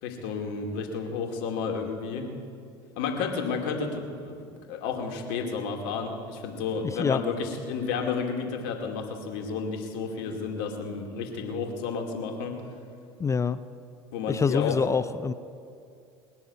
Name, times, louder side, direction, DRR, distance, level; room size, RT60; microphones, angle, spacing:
voice 1, 0.0-2.3 3.0-12.6 14.1-14.8, left 5 dB, 65° left, 2 dB, 2.4 m, -31 dB
voice 2, 6.8-7.2 13.2-13.6 14.3-15.3, left 5 dB, 20° left, 14 dB, 0.5 m, -25 dB
20.5 x 7.0 x 9.5 m, 2.4 s
hypercardioid pair, 80°, 14 cm